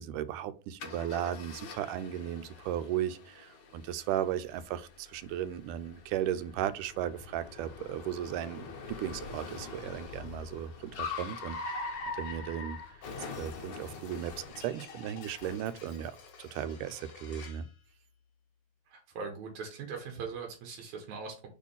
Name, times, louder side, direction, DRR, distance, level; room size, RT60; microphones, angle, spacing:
voice 1, 0.0-11.9 12.2-12.8 13.4-16.1 16.4-17.7, right 10 dB, 90° right, 2.1 m, -36 dB
Car, 0.8-17.7, left 4 dB, 85° left, 0.9 m, -44 dB
voice 2, 18.9-21.5, right 5 dB, 70° right, 2.4 m, -40 dB
4.8 x 4.4 x 5.5 m
omnidirectional pair, 3.6 m